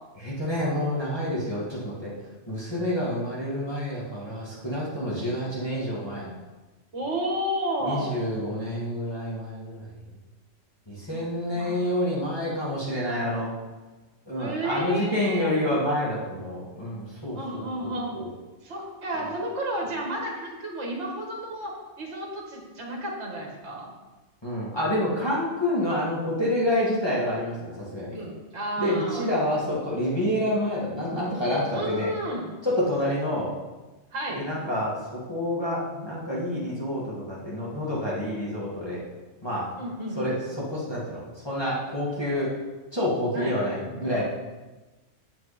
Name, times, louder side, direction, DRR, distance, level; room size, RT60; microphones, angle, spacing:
voice 1, 0.2-2.1 2.5-6.3 7.8-9.9 10.9-13.5 14.3-18.3 19.2-19.3 24.4-28.2 28.8-32.1 32.6-33.5 34.3-39.0 39.4-39.7 40.2-42.5 42.9-44.2, left 1 dB, 20° left, -7 dB, 2.0 m, -28 dB
voice 2, 5.1-5.5 6.9-8.2 11.1-11.2 11.5-11.8 14.4-15.5 17.4-18.1 18.6-21.7 22.0-23.9 28.1-29.3 31.7-32.5 34.1-34.4 39.8-40.3 43.3-43.6, right 1 dB, 65° right, -1 dB, 1.9 m, -32 dB
8.5 x 7.7 x 4.2 m, 1.2 s
omnidirectional pair, 1.3 m